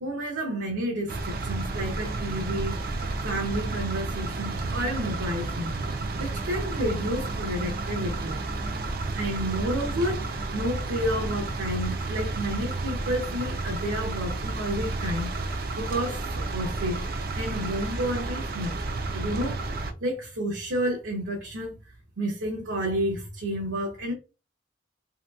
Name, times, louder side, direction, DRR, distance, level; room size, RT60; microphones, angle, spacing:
voice 1, 0.0-2.8 3.2-5.7 6.2-8.4 9.1-15.3 15.8-17.0 17.3-18.7 19.1-19.6 20.0-24.1, equal, 80° right, 0.8 m, -30 dB
sound 1, 1.1-19.9, right 3 dB, 50° right, 0.4 m, -31 dB
2.9 x 2.8 x 2.3 m
head